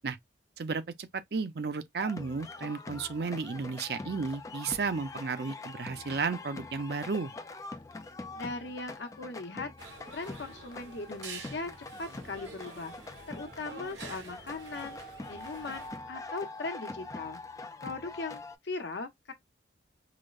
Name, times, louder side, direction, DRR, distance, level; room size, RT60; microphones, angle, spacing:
voice 1, 0.6-7.3, right 4 dB, 60° right, 0.5 m, -33 dB
sound 1, 2.0-18.6, left 2 dB, 20° left, 0.3 m, -44 dB
voice 2, 8.3-9.7 10.1-11.7 12.0-12.9 13.3-15.0 15.3-17.4 17.8-19.3, left 3 dB, 75° left, 0.8 m, -39 dB
sound 2, 9.8-15.9, right 4 dB, 85° right, 1.2 m, -48 dB
4.8 x 2.1 x 2.3 m
head